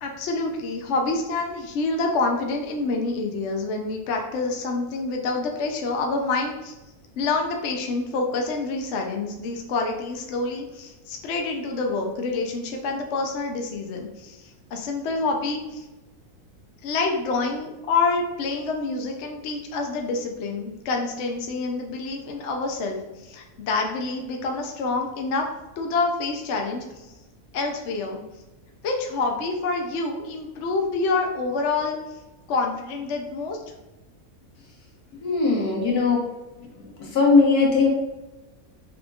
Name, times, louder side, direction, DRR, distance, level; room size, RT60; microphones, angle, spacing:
voice 1, 0.0-6.8 7.2-15.8 16.8-25.5 25.8-27.1 27.5-28.2 28.8-32.0 32.5-33.6, left 3 dB, 60° left, 2 dB, 0.8 m, -27 dB
voice 2, 35.2-36.2 36.8-37.9, left 4 dB, 80° left, -2 dB, 1.6 m, -19 dB
5.2 x 3.5 x 2.4 m, 1.1 s
omnidirectional pair, 1.6 m